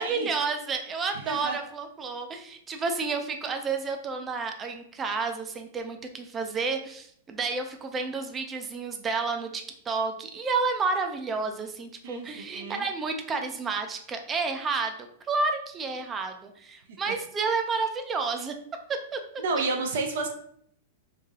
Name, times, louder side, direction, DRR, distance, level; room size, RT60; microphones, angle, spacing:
voice 1, 0.0-18.5 18.9-19.2, right 4 dB, 20° right, 5 dB, 0.5 m, -30 dB
voice 2, 1.2-1.6 12.0-12.8 17.1-17.2 19.4-20.3, right 3 dB, 70° right, 3 dB, 0.6 m, -30 dB
3.3 x 2.7 x 3.5 m, 0.66 s
hypercardioid pair, 145°, 0 cm